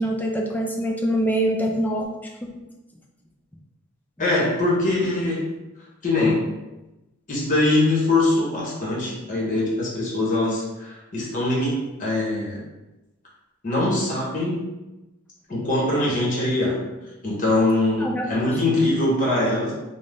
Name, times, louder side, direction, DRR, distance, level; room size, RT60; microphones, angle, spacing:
voice 1, 0.0-2.1 18.0-18.3, right 1 dB, 10° left, 0 dB, 0.3 m, -24 dB
voice 2, 4.2-5.5 6.0-6.5 7.3-12.6 13.6-14.6 15.5-16.8 17.2-19.7, left 2 dB, 40° left, -5 dB, 1.0 m, -22 dB
2.6 x 2.1 x 3.4 m, 1.1 s
head